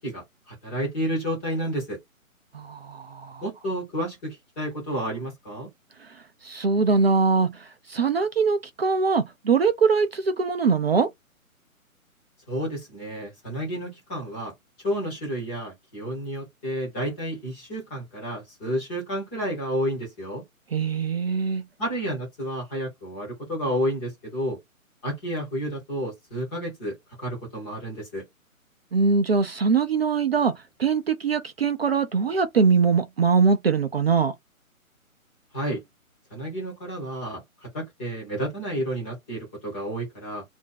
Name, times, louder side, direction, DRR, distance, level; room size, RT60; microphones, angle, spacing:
voice 1, 0.0-2.0 3.4-5.7 12.5-14.5 14.8-20.4 21.8-24.6 25.0-28.2 35.5-35.8 36.3-40.4, equal, 10° left, 0.6 m, -31 dB
voice 2, 2.5-3.4 6.0-6.2 6.4-11.1 20.7-21.6 28.9-30.5 30.8-34.3, right 5 dB, 45° right, 0.5 m, -22 dB
2.6 x 2.1 x 3.9 m
figure-of-eight pair, 140°, 43 cm